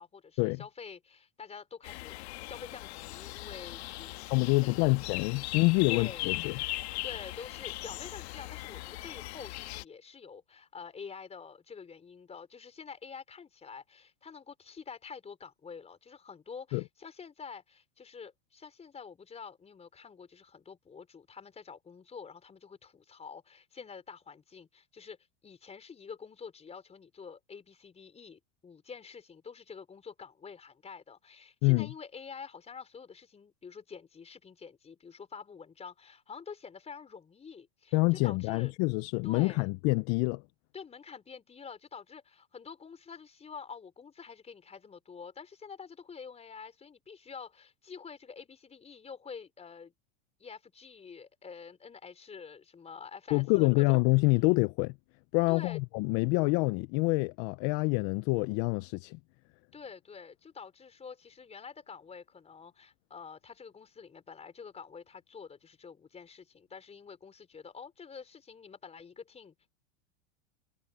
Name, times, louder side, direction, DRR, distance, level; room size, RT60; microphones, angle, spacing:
voice 1, 0.0-2.1 2.4-6.3 7.0-25.2 25.4-38.7 39.2-39.7 40.7-49.9 50.4-54.0 55.5-55.8 59.7-69.7, left 6 dB, 20° left, 5.0 m, -47 dB
sound 1, 1.8-9.8, left 19 dB, 75° left, 1.5 m, -39 dB
voice 2, 4.3-6.6 16.7-16.8 31.6-31.9 37.9-40.4 53.3-54.9 55.3-59.2, left 26 dB, 50° left, 0.7 m, -26 dB
supercardioid pair, 125°, 33 cm